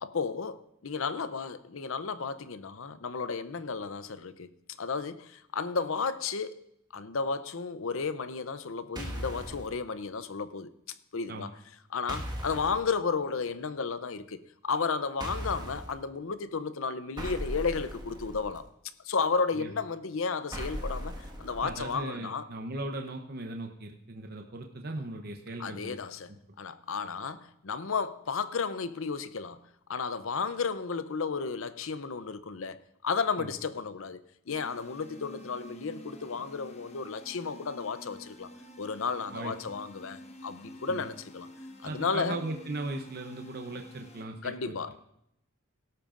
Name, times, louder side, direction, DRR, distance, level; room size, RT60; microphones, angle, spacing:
voice 1, 0.0-4.5 4.8-6.6 6.9-10.7 11.1-11.5 11.9-18.6 19.0-22.5 25.6-29.6 29.9-32.8 33.0-38.5 38.8-41.5 41.8-42.4 44.4-44.9, left 5 dB, 70° left, 0.6 m, -33 dB
sound 1, 9.0-9.7 12.1-12.8 15.2-15.9 17.2-18.6 20.5-21.9, equal, 20° right, 1.6 m, -38 dB
voice 2, 21.6-26.0 33.4-33.5 39.3-39.7 40.9-41.0 41.8-44.7, right 2 dB, 45° right, 0.8 m, -38 dB
sound 2, 34.5-44.2, left 1 dB, 30° left, 1.2 m, -49 dB
18.0 x 12.0 x 2.5 m
head